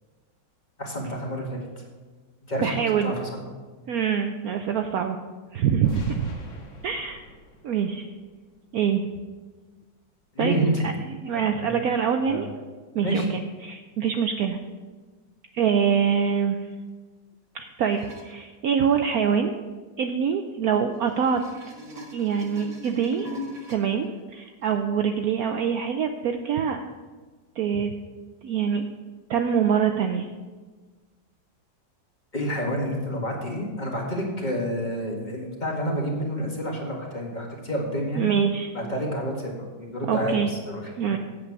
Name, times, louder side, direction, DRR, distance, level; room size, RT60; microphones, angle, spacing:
voice 1, 0.8-1.6 2.5-3.3 10.4-10.9 11.3-11.8 12.2-12.4 13.0-13.3 32.3-38.3 38.7-41.1, equal, 25° left, -1 dB, 1.9 m, -29 dB
voice 2, 2.6-3.1 3.9-5.2 5.5-6.3 6.8-7.2 7.6-8.1 8.7-9.0 10.4-12.5 12.9-14.6 15.5-16.7 17.5-19.5 20.0-21.4 22.1-23.3 23.7-26.9 27.6-27.9 28.4-28.8 29.3-30.3 38.2-38.7 40.1-40.5 41.0-41.2, right 7 dB, 70° right, 5 dB, 0.9 m, -25 dB
sound 1, 5.8-8.8, left 1 dB, 75° left, 2.1 m, -40 dB
sound 2, 17.9-18.2 20.9-23.8 24.7-24.8, left 2 dB, 40° right, 2.0 m, -40 dB
8.4 x 8.3 x 5.9 m, 1.4 s
omnidirectional pair, 2.0 m